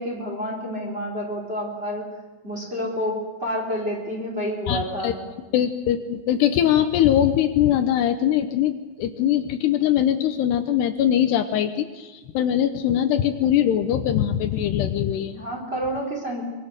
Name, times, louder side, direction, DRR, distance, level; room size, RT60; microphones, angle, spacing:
voice 1, 0.0-2.0 2.4-5.2 15.4-16.4, equal, 15° right, -1 dB, 4.6 m, -29 dB
voice 2, 4.7-5.1 5.5-15.4, left 10 dB, 75° left, 8 dB, 2.9 m, -22 dB
24.5 x 24.0 x 6.6 m, 1.2 s
omnidirectional pair, 5.0 m